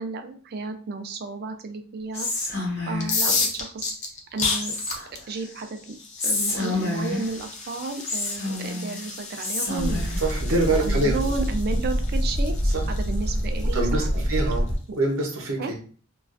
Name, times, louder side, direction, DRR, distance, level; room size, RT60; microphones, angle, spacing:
voice 1, 0.0-2.3 2.9-3.9 4.3-4.7 5.3-6.0 6.2-10.1 10.7-12.5 12.9-14.5 15.6-15.9, right 3 dB, 45° right, 6 dB, 0.3 m, -32 dB
Whispering, 2.1-3.2 4.6-5.3 6.2-7.4 8.1-9.0 9.4-10.3, left 2 dB, 50° left, 1.0 m, -28 dB
sound 1, 2.9-14.7, left 4 dB, 35° left, 0.4 m, -33 dB
sound 2, 9.8-14.8, equal, 80° left, 0.7 m, -25 dB
voice 2, 10.2-11.2 12.6-12.9 13.7-15.7, right 2 dB, 70° right, 0 dB, 0.7 m, -25 dB
2.3 x 2.3 x 2.4 m, 0.42 s
head